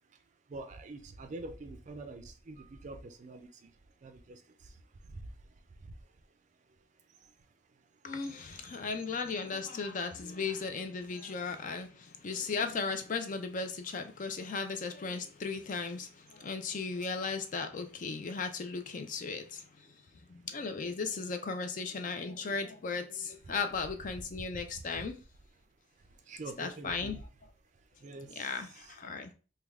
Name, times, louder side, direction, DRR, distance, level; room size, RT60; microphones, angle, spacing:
voice 1, 0.5-3.7 4.0-5.3 5.8-5.9 7.2-7.3 24.4-25.1 26.1-27.2 28.0-28.5 28.8-28.9, right 2 dB, 40° right, 0.4 m, -46 dB
voice 2, 8.0-19.7 20.3-25.2 26.6-27.2 28.3-29.3, left 4 dB, 45° left, 0.4 m, -36 dB
3.3 x 2.3 x 3.4 m
head